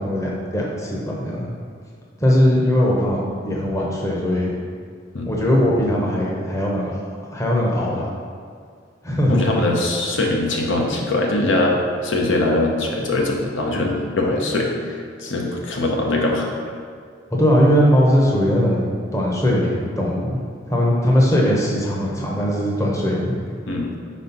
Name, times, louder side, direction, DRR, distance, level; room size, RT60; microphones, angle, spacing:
voice 1, 0.0-1.5 2.2-3.2 3.4-4.5 5.3-6.9 7.3-8.1 9.0-9.4 17.3-20.4 20.7-23.4, equal, 15° left, -3 dB, 0.8 m, -19 dB
voice 2, 9.3-11.8 12.0-14.9 15.2-16.5 23.7-24.0, left 2 dB, 75° left, 0 dB, 0.8 m, -21 dB
4.7 x 4.2 x 5.3 m, 2.2 s
head